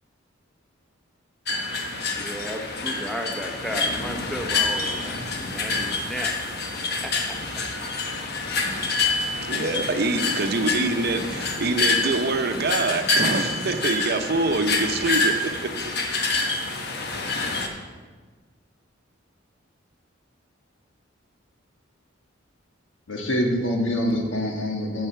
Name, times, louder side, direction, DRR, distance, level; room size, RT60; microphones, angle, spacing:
sound 1, 1.5-17.7, left 3 dB, 55° left, 1.1 m, -27 dB
voice 1, 2.1-6.3 7.0-7.6, equal, ahead, 2 dB, 0.9 m, -34 dB
voice 2, 9.4-15.3 15.6-15.7, right 3 dB, 55° right, 7 dB, 0.7 m, -25 dB
voice 3, 23.1-25.1, left 1 dB, 80° left, 1 dB, 1.6 m, -25 dB
9.0 x 7.5 x 5.7 m, 1.4 s
head